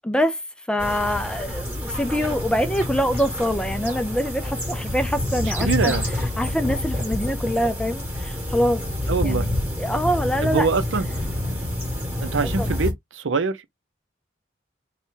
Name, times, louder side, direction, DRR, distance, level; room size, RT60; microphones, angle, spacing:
voice 1, 0.0-0.4 0.7-6.0 6.4-8.8 9.2-9.5 9.8-10.7 12.4-12.7, equal, 5° left, 0.5 m, -24 dB
sound 1, 0.8-12.9, left 1 dB, 10° right, 1.8 m, -28 dB
voice 2, 5.4-6.1 9.1-9.5 10.4-11.1 12.2-13.7, right 4 dB, 85° right, 0.7 m, -24 dB
4.2 x 2.4 x 3.9 m
head